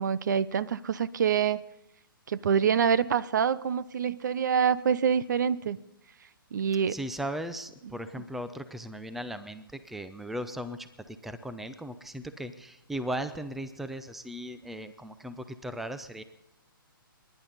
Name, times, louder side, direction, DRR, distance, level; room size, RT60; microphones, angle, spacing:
voice 1, 0.0-1.6 2.3-5.8 6.5-7.0, right 7 dB, 55° right, 18 dB, 0.6 m, -26 dB
voice 2, 6.9-16.2, right 1 dB, ahead, 12 dB, 0.6 m, -37 dB
29.5 x 11.0 x 4.0 m, 0.90 s
figure-of-eight pair, 130°, 12 cm